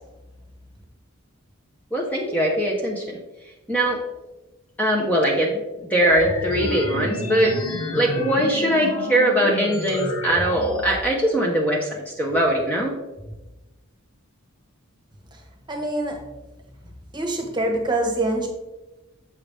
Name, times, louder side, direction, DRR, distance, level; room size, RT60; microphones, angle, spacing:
voice 1, 1.9-3.2 3.7-4.0 4.8-7.5 7.9-13.0, right 1 dB, 10° left, -2 dB, 0.8 m, -21 dB
sound 1, 6.0-11.0, left 1 dB, 80° left, 1.1 m, -29 dB
voice 2, 15.7-16.2 17.1-18.5, right 1 dB, 20° right, 2 dB, 1.2 m, -24 dB
7.3 x 5.6 x 3.4 m, 1.1 s
head